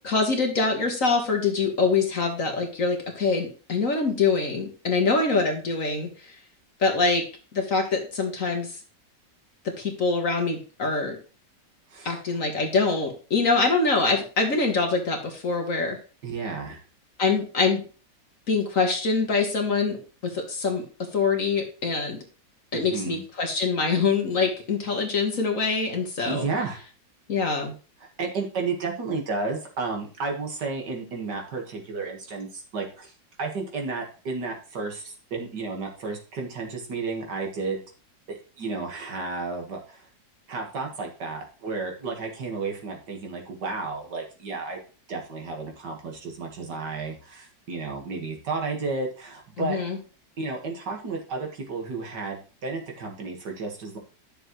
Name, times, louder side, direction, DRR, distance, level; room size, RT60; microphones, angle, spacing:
voice 1, 0.0-6.3 6.8-7.2 7.5-8.7 9.6-11.2 12.0-16.0 17.2-17.8 18.5-20.8 21.1-22.2 22.7-26.4 27.3-27.7 49.6-50.0, left 4 dB, 50° left, 3 dB, 1.6 m, -24 dB
voice 2, 16.2-16.8 22.7-23.2 26.3-26.8 28.2-33.1 33.4-37.8 38.3-40.1 40.5-44.8 45.1-49.8 50.4-54.0, right 4 dB, 65° right, 1 dB, 2.3 m, -32 dB
10.0 x 6.6 x 3.1 m, 0.36 s
omnidirectional pair, 2.0 m